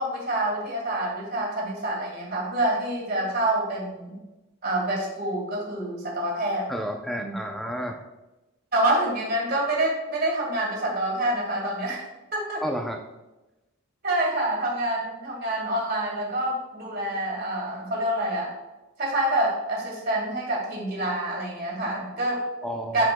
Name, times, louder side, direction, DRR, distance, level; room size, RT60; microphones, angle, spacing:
voice 1, 0.0-4.2 4.6-6.7 7.2-7.3 8.7-12.6 14.0-18.5 19.0-22.4 22.9-23.1, right 1 dB, 45° right, -1 dB, 2.1 m, -27 dB
voice 2, 6.7-8.0 12.6-13.0 22.6-23.1, equal, ahead, 2 dB, 0.5 m, -31 dB
11.5 x 5.0 x 2.2 m, 1.1 s
head